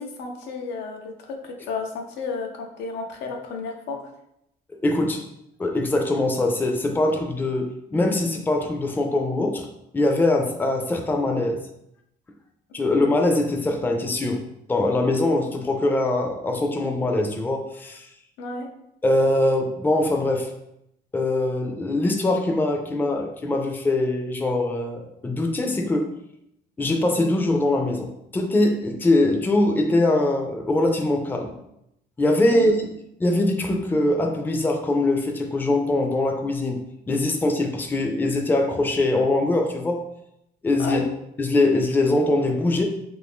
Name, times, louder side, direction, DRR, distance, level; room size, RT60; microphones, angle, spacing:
voice 1, 0.0-4.0 12.7-13.0 18.4-18.7 32.5-32.7 40.8-41.0, left 4 dB, 85° left, 3 dB, 0.6 m, -32 dB
voice 2, 4.8-5.2 5.6-9.7 9.9-11.6 12.7-14.4 14.7-18.1 19.0-20.5 21.1-26.1 26.8-31.5 32.2-32.8 33.2-40.1 40.6-41.0 41.4-42.8, left 2 dB, 10° left, 3 dB, 0.4 m, -22 dB
2.6 x 2.6 x 3.5 m, 0.79 s
cardioid pair, 110°, 17 cm